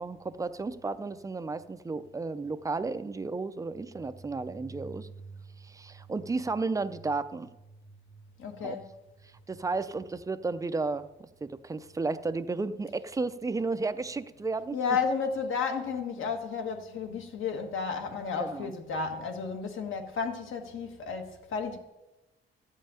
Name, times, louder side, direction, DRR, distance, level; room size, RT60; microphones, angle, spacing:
voice 1, 0.0-5.1 5.6-7.5 8.6-8.8 9.5-14.8 18.4-18.7, right 3 dB, 15° right, 0.4 m, -33 dB
voice 2, 8.4-8.9 14.7-21.8, left 5 dB, 70° left, 1.6 m, -32 dB
13.5 x 5.5 x 8.8 m
wide cardioid pair, 175°, 21 cm